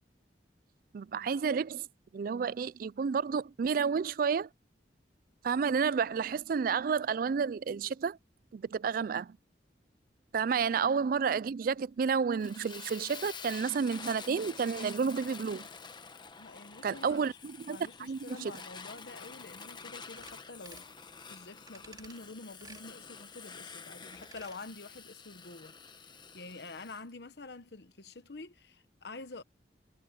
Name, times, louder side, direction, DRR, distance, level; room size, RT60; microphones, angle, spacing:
voice 1, 0.9-1.9 2.1-4.5 5.4-8.2 8.5-9.4 10.3-15.6 16.8-18.5, right 6 dB, 50° right, 0.3 m, -31 dB
Fire, 12.4-27.0, left 5 dB, 25° left, 1.0 m, -48 dB
voice 2, 16.4-17.4 17.7-20.9 21.3-29.4, left 3 dB, 65° left, 1.0 m, -48 dB
sound 1, 20.2-20.4 20.7-20.9 21.7-22.2 22.6-22.9 24.1-24.6 24.9-25.0, right 4 dB, 25° right, 3.9 m, -53 dB
head